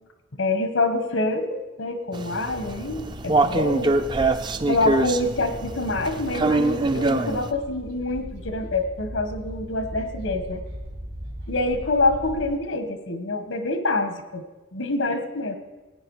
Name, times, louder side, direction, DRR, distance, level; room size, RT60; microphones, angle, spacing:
voice 1, 0.4-3.9 4.7-10.6 11.5-14.4 14.7-15.6, left 2 dB, 85° left, 8 dB, 1.5 m, -26 dB
sound 1, 2.1-7.5, right 3 dB, 25° right, 0.4 m, -24 dB
sound 2, 2.5-12.5, equal, 75° right, 2.3 m, -39 dB
17.0 x 9.6 x 4.9 m, 1.1 s
head